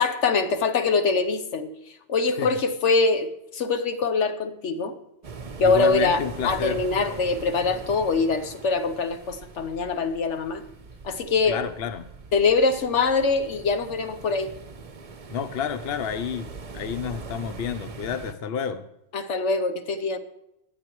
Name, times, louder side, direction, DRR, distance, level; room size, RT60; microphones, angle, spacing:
voice 1, 0.0-1.7 2.1-4.9 5.6-10.6 11.0-11.6 12.3-14.5 19.1-20.2, left 4 dB, 80° left, 8 dB, 1.3 m, -23 dB
sound 1, 5.2-18.3, right 4 dB, 35° right, 0.7 m, -41 dB
voice 2, 5.6-6.8 11.5-12.1 15.3-16.5 16.7-18.8, left 7 dB, 60° left, 10 dB, 0.9 m, -30 dB
22.0 x 8.5 x 3.1 m, 0.85 s
omnidirectional pair, 1.2 m